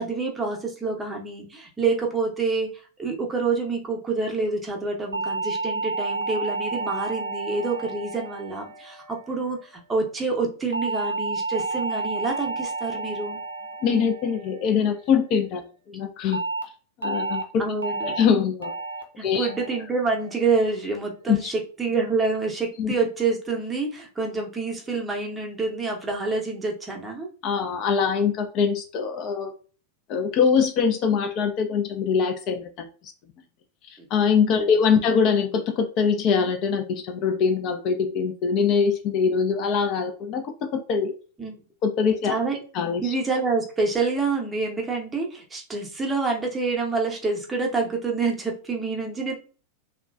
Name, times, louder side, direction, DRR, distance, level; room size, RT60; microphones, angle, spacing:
voice 1, 0.0-13.4 17.6-18.1 19.2-27.3 34.0-34.1 34.6-34.8 35.0-35.1 41.4-41.6 42.2-42.6 43.0-49.3, right 4 dB, 15° right, 1 dB, 0.7 m, -27 dB
sound 1, 5.1-9.6 10.7-15.2 16.3-16.6 17.0-17.4 17.8-18.2 18.6-19.0 19.4-19.8 20.2-20.6, right 3 dB, 75° right, 0.4 m, -31 dB
voice 2, 13.8-15.6 15.9-16.4 17.0-17.4 18.0-18.7 19.2-19.5 21.3-21.5 22.8-22.9 27.4-29.5 30.1-32.7 34.1-40.4 40.7-41.1 41.8-42.3 42.7-43.1, left 6 dB, 40° left, 5 dB, 0.4 m, -23 dB
3.0 x 2.1 x 2.3 m, 0.38 s
figure-of-eight pair, 90°, 0 cm